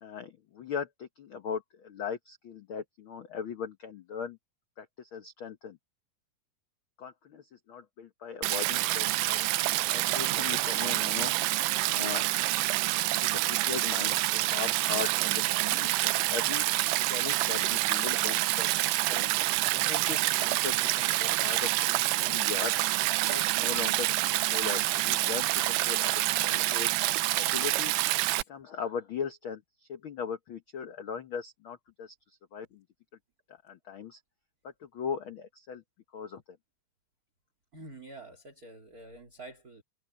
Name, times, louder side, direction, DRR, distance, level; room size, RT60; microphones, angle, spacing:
voice 1, 0.0-4.4 4.8-5.8 7.0-7.4 7.7-9.4 9.9-11.3 11.8-12.2 13.2-15.4 15.7-16.6 17.1-18.7 19.1-19.3 19.7-22.7 23.3-26.9 27.3-27.9 28.5-29.6 29.9-32.1 32.5-32.8 33.6-34.2 34.9-35.8 36.1-36.4, left 7 dB, 85° left, 1.1 m, -38 dB
Stream, 8.4-28.4, right 18 dB, 90° right, 2.3 m, -27 dB
voice 2, 37.7-39.8, right 2 dB, 25° right, 2.9 m, -48 dB
omnidirectional pair, 3.9 m